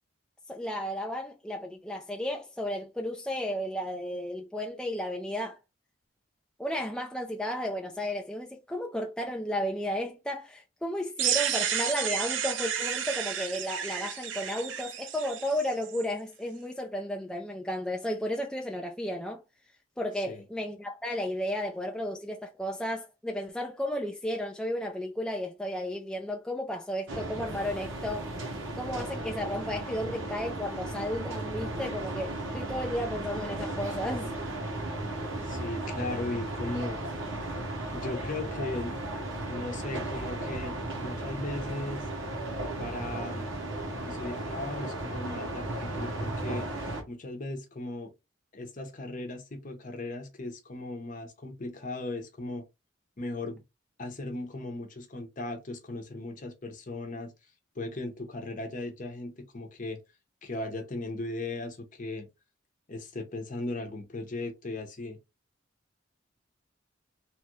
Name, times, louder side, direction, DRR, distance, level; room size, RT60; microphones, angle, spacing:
voice 1, 0.5-5.6 6.6-19.4 20.0-28.3 28.7-34.3, equal, 5° left, 0.3 m, -33 dB
sound 1, 11.2-16.0, right 9 dB, 65° right, 0.5 m, -31 dB
sound 2, 27.1-47.0, right 1 dB, 90° right, 0.9 m, -35 dB
voice 2, 35.4-37.0 37.9-38.9 39.4-42.1 42.8-43.5 44.0-46.7 47.1-48.1 48.5-52.6 53.2-53.6 54.0-57.3 57.8-60.0 60.4-62.3 62.9-65.2, left 2 dB, 40° left, 0.7 m, -37 dB
3.0 x 2.3 x 3.0 m
head